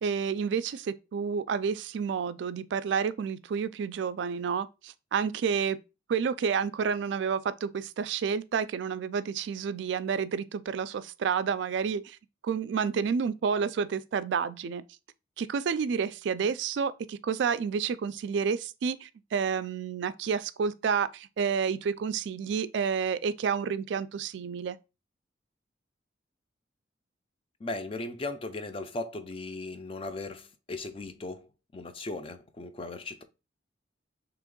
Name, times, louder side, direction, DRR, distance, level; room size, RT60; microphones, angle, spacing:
voice 1, 0.0-5.8 6.1-12.2 12.4-14.8 15.4-24.8, right 6 dB, 70° right, 0.3 m, -30 dB
voice 2, 27.6-33.2, left 2 dB, 30° left, 0.4 m, -37 dB
3.5 x 2.9 x 3.7 m
head